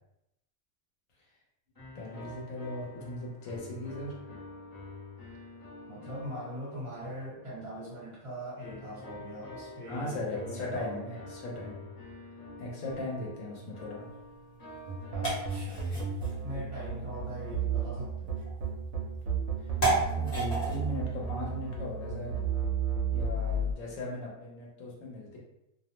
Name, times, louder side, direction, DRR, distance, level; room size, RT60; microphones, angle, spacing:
sound 1, 1.7-7.6 8.6-16.0, left 2 dB, 20° left, 0.5 m, -47 dB
voice 1, 1.9-4.2 9.9-11.8 12.6-14.1 15.8-15.9 20.2-22.3 23.1-25.4, left 1 dB, 75° left, -2 dB, 1.1 m, -38 dB
voice 2, 5.9-11.2 15.1-16.1 16.4-18.3, equal, 25° right, -8 dB, 1.2 m, -42 dB
sound 2, 14.0-22.6, right 2 dB, 55° left, 1.2 m, -36 dB
sound 3, 14.9-23.7, right 5 dB, 65° right, 0.9 m, -32 dB
2.6 x 2.0 x 3.0 m, 0.86 s
omnidirectional pair, 1.4 m